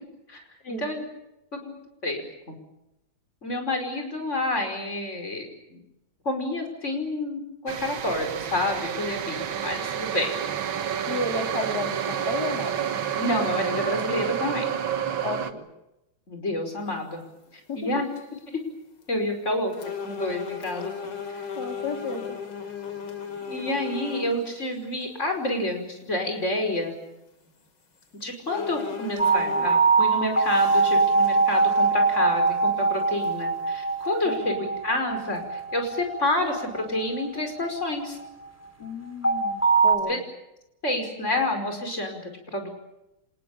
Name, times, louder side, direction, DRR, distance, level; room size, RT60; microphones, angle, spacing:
voice 1, 0.7-1.0 1.6-1.7 2.0-2.2 3.4-5.8 6.3-10.3 13.2-14.6 16.3-17.2 17.8-18.1 19.1-19.7 20.0-20.9 21.3-21.4 23.5-26.9 28.2-38.2 40.1-40.2 40.8-42.7, left 1 dB, 35° left, 5 dB, 5.6 m, -29 dB
sound 1, 7.7-15.5, right 9 dB, 75° right, 2.1 m, -29 dB
voice 2, 11.1-12.7 15.2-15.7 17.7-17.8 21.6-22.4 34.2-34.5 38.8-40.2, left 3 dB, 50° left, 3 dB, 4.2 m, -33 dB
sound 2, 17.3-17.5 18.0-18.4 19.0-19.1 19.7-24.4 25.0-25.1 27.5-27.6 28.0-28.1 28.5-29.9 30.3-32.2 32.5-32.6 33.2-33.3 34.0-34.4, left 6 dB, 80° left, 3.6 m, -36 dB
sound 3, 29.2-38.3 39.2-40.0, right 4 dB, 5° left, 3.7 m, -23 dB
26.5 x 20.0 x 8.7 m, 0.89 s
omnidirectional pair, 2.2 m